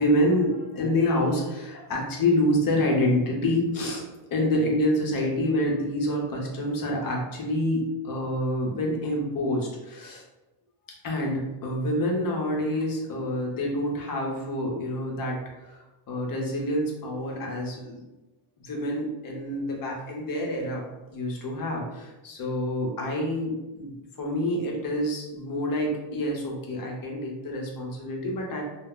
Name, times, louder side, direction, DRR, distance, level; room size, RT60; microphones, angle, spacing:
voice 1, 0.0-4.0 4.3-10.2 11.0-15.4 15.7-15.8 16.1-18.0 18.6-23.9 24.2-28.6, left 1 dB, 45° left, -1 dB, 0.8 m, -27 dB
2.2 x 2.0 x 3.6 m, 1.0 s
cardioid pair, 115°, 48 cm